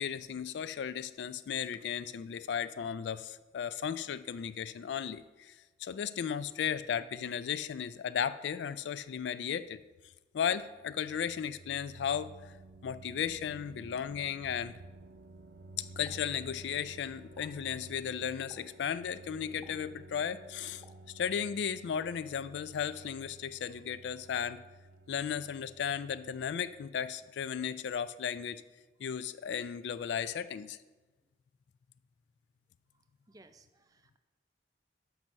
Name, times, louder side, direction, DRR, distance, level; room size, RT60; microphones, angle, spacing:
voice 1, 0.0-9.8 10.3-12.3 12.8-14.7 15.8-20.8 21.1-24.6 25.1-28.6 29.0-30.8, left 8 dB, 80° left, 14 dB, 0.3 m, -35 dB
sound 1, 10.6-27.4, right 2 dB, 65° right, 0.6 m, -53 dB
Explosion, 16.1-16.9 17.2-17.7 18.5-18.9 19.6-20.0 20.8-21.5 22.0-22.3, left 1 dB, 15° left, 1.3 m, -60 dB
voice 2, 33.3-34.2, right 2 dB, 20° right, 9 dB, 0.4 m, -60 dB
6.0 x 5.4 x 6.2 m, 1.2 s
head